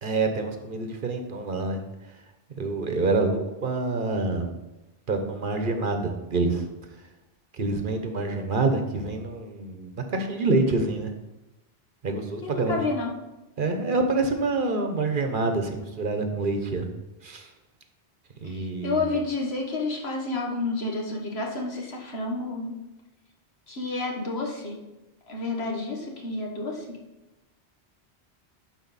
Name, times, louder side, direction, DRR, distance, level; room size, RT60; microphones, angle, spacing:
voice 1, 0.0-1.8 2.6-4.5 5.1-6.7 7.6-11.1 12.0-12.8 13.6-16.9 17.2-17.5 18.4-19.0, right 3 dB, 55° right, 5 dB, 1.0 m, -26 dB
voice 2, 12.4-13.1 18.4-22.8 23.7-24.8 25.3-27.0, left 3 dB, 75° left, 0 dB, 1.6 m, -30 dB
11.5 x 4.5 x 4.1 m, 1.0 s
omnidirectional pair, 1.1 m